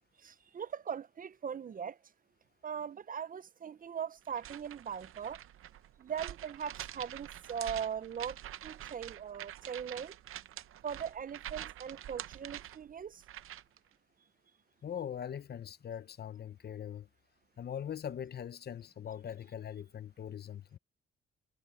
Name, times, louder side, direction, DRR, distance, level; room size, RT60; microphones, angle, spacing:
voice 1, 0.2-2.0 2.6-5.4 6.0-8.4 8.6-10.1 10.8-13.2, right 7 dB, 40° right, 0.5 m, -40 dB
sound 1, 4.3-13.8, right 12 dB, 85° right, 0.7 m, -46 dB
voice 2, 14.8-17.1 17.6-20.8, left 9 dB, 50° left, 0.6 m, -41 dB
cardioid pair, 110°, 21 cm